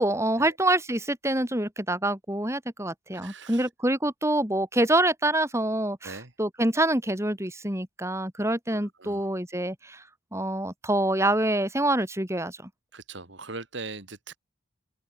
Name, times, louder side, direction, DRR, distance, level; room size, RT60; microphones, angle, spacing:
voice 1, 0.0-10.0 10.3-12.7, right 1 dB, 15° right, 4.2 m, -26 dB
voice 2, 3.1-3.7 6.0-6.3 8.7-9.2 12.9-14.4, right 3 dB, 60° right, 2.7 m, -40 dB
open air
head